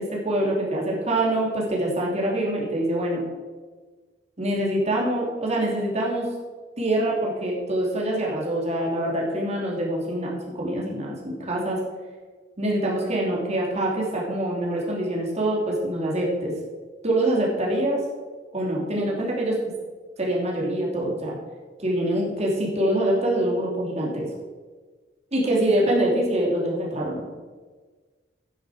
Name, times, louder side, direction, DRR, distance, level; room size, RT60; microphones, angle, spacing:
voice 1, 0.0-3.2 4.4-6.3 6.8-11.8 12.6-16.5 17.0-18.0 18.5-19.6 20.2-21.4 21.8-24.3 25.3-27.2, right 1 dB, 40° right, -3 dB, 3.0 m, -25 dB
10.0 x 9.7 x 5.0 m, 1.4 s
head